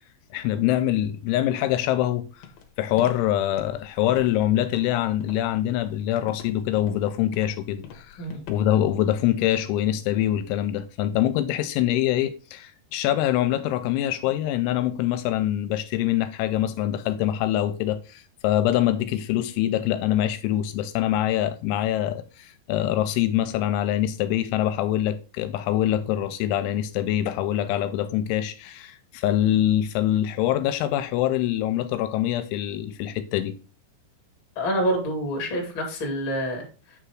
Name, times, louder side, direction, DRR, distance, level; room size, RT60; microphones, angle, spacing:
voice 1, 0.3-2.3 2.8-33.5, left 12 dB, 85° left, 2.9 m, -24 dB
Walk footsteps, 2.4-8.9, left 8 dB, 70° left, 2.3 m, -42 dB
voice 2, 34.6-36.7, equal, 40° left, 1.9 m, -27 dB
9.4 x 3.4 x 4.7 m
omnidirectional pair, 5.5 m